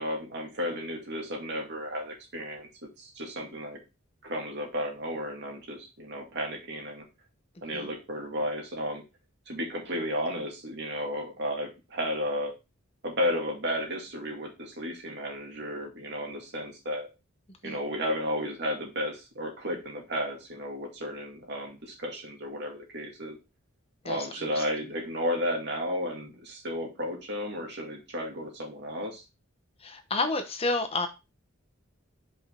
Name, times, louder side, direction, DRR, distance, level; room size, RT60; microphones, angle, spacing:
voice 1, 0.0-2.7 3.0-3.8 4.2-7.0 7.6-9.0 9.5-12.5 13.0-17.1 17.6-23.4 24.0-29.2, equal, 55° right, 1 dB, 2.2 m, -33 dB
voice 2, 24.0-24.6 29.8-31.1, left 3 dB, 30° left, 7 dB, 0.9 m, -30 dB
5.4 x 5.4 x 3.6 m, 0.27 s
head